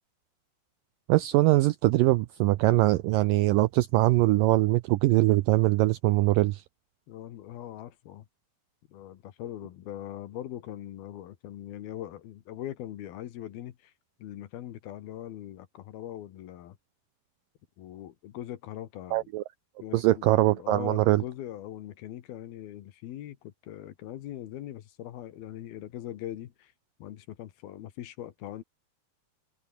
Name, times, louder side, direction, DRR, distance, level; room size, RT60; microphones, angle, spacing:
voice 1, 1.1-6.6 19.1-19.4 19.9-21.2, right 18 dB, 85° right, 2.0 m, -22 dB
voice 2, 7.1-8.3 8.9-13.9 14.2-16.8 17.8-19.3 19.8-26.7 27.0-28.6, left 12 dB, 70° left, 3.3 m, -41 dB
omnidirectional pair, 4.6 m